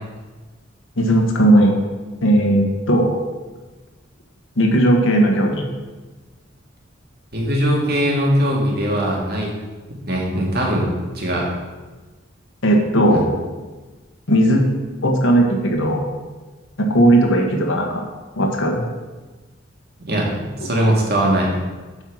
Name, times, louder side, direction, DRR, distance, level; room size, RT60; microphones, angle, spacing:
voice 1, 1.0-1.8 2.2-3.1 4.6-5.6 12.6-13.3 14.3-14.6 15.0-16.0 16.8-18.0 18.4-18.8, right 1 dB, 80° left, 1 dB, 1.3 m, -16 dB
voice 2, 7.3-9.5 9.9-10.9 11.1-11.5 13.1-13.2 20.1-21.5, equal, 55° right, -2 dB, 2.0 m, -20 dB
7.9 x 4.5 x 6.3 m, 1.3 s
head